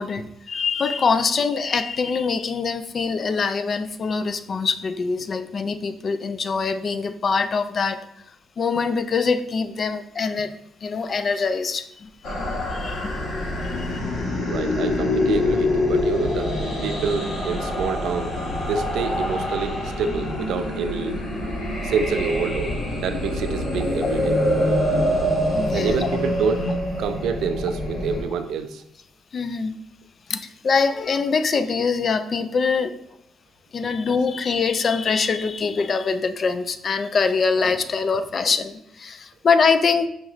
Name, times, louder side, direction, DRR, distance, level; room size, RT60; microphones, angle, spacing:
voice 1, 0.0-8.1 8.6-10.5 10.8-12.1 12.7-13.2 13.6-14.0 25.5-26.1 29.3-29.8 30.3-32.9 33.7-40.1, left 5 dB, 45° left, 11 dB, 0.3 m, -23 dB
sound 1, 12.2-28.2, left 1 dB, 70° left, 1.2 m, -25 dB
voice 2, 14.5-16.5 16.8-18.4 18.7-21.2 21.8-22.8 23.0-24.4 25.7-26.7 27.0-28.8 33.8-33.9, right 5 dB, 80° right, 8 dB, 0.3 m, -27 dB
5.1 x 3.0 x 2.4 m, 0.74 s
cardioid pair, 90°, 0 cm